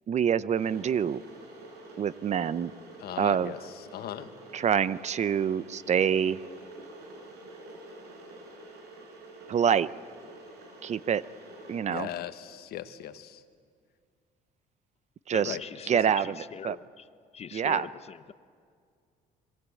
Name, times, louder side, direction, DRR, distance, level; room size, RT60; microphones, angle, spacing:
voice 1, 0.1-1.2 2.0-2.7 3.2-3.5 4.5-6.4 9.5-9.9 10.8-11.2 11.7-12.1 15.3-15.6 15.9-16.4 16.6-16.8 17.5-17.9, right 8 dB, 40° right, 17 dB, 0.7 m, -26 dB
Water / Boiling, 0.6-11.8, right 2 dB, 80° right, 7.2 m, -48 dB
voice 2, 3.0-4.3 11.9-13.4 15.4-15.6, left 11 dB, 70° left, 11 dB, 1.4 m, -39 dB
voice 3, 15.3-17.1 17.3-18.3, left 7 dB, 40° left, 14 dB, 0.9 m, -41 dB
26.0 x 22.5 x 8.4 m, 2.1 s
cardioid pair, 110°, 17 cm